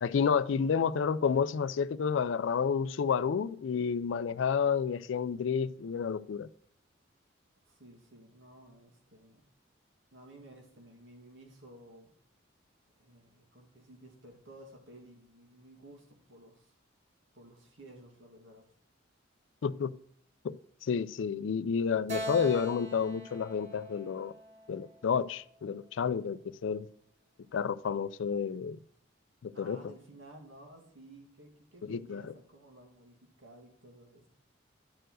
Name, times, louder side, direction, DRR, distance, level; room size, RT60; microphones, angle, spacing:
voice 1, 0.0-6.5 19.6-19.9 20.4-20.6 20.8-24.3 24.7-26.9 27.5-28.8 29.4-29.8 31.9-32.3, left 6 dB, 75° left, 0.4 m, -30 dB
voice 2, 7.7-9.4 10.1-12.1 12.9-16.8 17.3-18.6 29.5-34.3, right 1 dB, 80° right, 2.3 m, -54 dB
Keyboard (musical), 22.1-25.5, equal, 35° right, 1.5 m, -42 dB
11.0 x 4.6 x 6.2 m
head